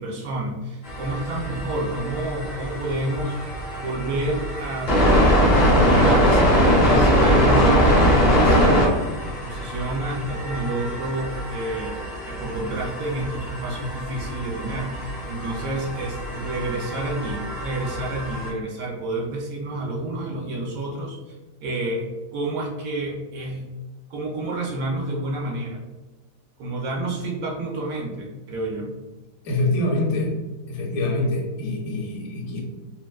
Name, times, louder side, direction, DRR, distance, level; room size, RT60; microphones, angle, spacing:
voice 1, 0.0-3.4 3.7-12.0 12.3-21.4 21.6-23.7 24.1-25.8 26.6-28.9, right 1 dB, 70° right, -2 dB, 0.9 m, -29 dB
sound 1, 0.8-18.5, equal, 40° left, 0.5 m, -22 dB
voice 2, 29.4-30.3 30.7-32.6, left 2 dB, 70° left, -1 dB, 1.1 m, -25 dB
3.4 x 2.4 x 2.2 m, 1.2 s
omnidirectional pair, 1.7 m